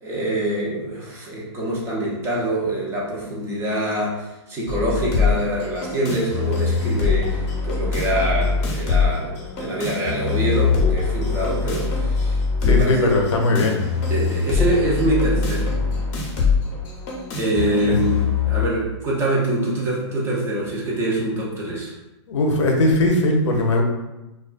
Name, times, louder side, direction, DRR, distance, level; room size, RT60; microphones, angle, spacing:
voice 1, 0.0-13.2 14.1-15.7 17.4-21.9, right 1 dB, 15° right, -4 dB, 0.5 m, -25 dB
sound 1, 4.7-18.7, left 5 dB, 40° left, 0.7 m, -23 dB
voice 2, 12.6-13.8 17.9-18.0 22.3-23.8, left 2 dB, 80° left, 2 dB, 0.6 m, -19 dB
2.3 x 2.2 x 2.4 m, 0.97 s
hypercardioid pair, 140°, 15 cm